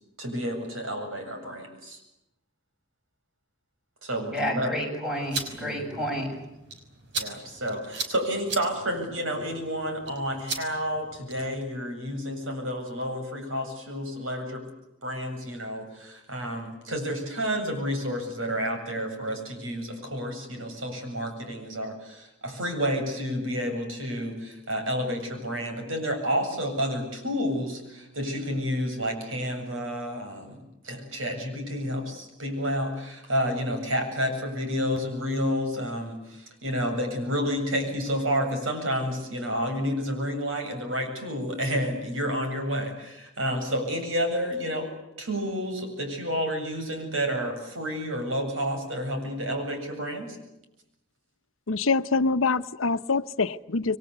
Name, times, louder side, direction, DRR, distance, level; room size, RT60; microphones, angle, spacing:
voice 1, 0.2-2.0 4.0-4.7 5.6-6.1 7.1-14.6 15.0-44.9 45.2-50.4, equal, 85° right, 5 dB, 7.9 m, -30 dB
voice 2, 4.3-6.4, equal, 5° right, 1 dB, 7.6 m, -30 dB
sound 1, 5.1-11.6, right 4 dB, 60° right, 5.4 m, -38 dB
voice 3, 51.7-54.0, left 4 dB, 90° left, 11 dB, 0.9 m, -25 dB
28.5 x 23.0 x 8.2 m, 0.88 s
head